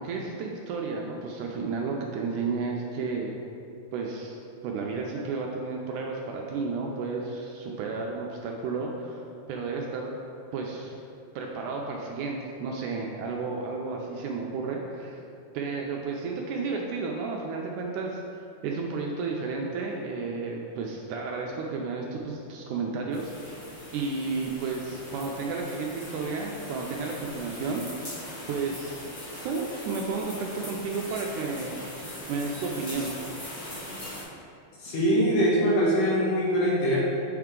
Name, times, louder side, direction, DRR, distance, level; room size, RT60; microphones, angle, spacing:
voice 1, 0.0-3.4 3.9-4.4 4.6-9.2 9.5-10.2 10.5-11.0 11.4-15.2 15.5-18.2 18.6-23.3 23.9-27.9 28.5-29.1 29.4-31.7 32.3-33.1, right 4 dB, 80° right, 0 dB, 1.9 m, -32 dB
sound 1, 23.1-34.2, left 1 dB, 40° left, 0.6 m, -40 dB
voice 2, 34.8-37.0, equal, 75° left, -6 dB, 2.9 m, -23 dB
7.9 x 4.6 x 3.7 m, 2.6 s
omnidirectional pair, 3.9 m